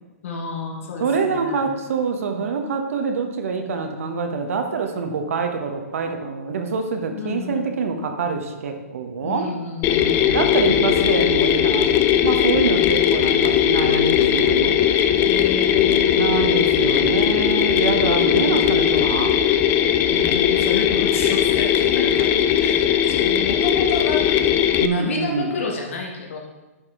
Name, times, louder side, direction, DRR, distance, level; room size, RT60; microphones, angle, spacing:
voice 1, 0.2-1.6 7.2-7.6 9.2-10.8 15.2-16.3 18.1-19.1 20.1-22.3 22.6-24.4 24.8-26.4, left 5 dB, 60° left, 0 dB, 1.6 m, -31 dB
voice 2, 1.0-9.5 10.3-14.8 16.2-19.4 24.8-25.6, right 5 dB, 65° right, 5 dB, 1.1 m, -25 dB
Mechanisms, 9.8-24.9, left 9 dB, 25° left, 0.4 m, -18 dB
11.0 x 4.8 x 3.7 m, 1.1 s
hypercardioid pair, 125°, 8 cm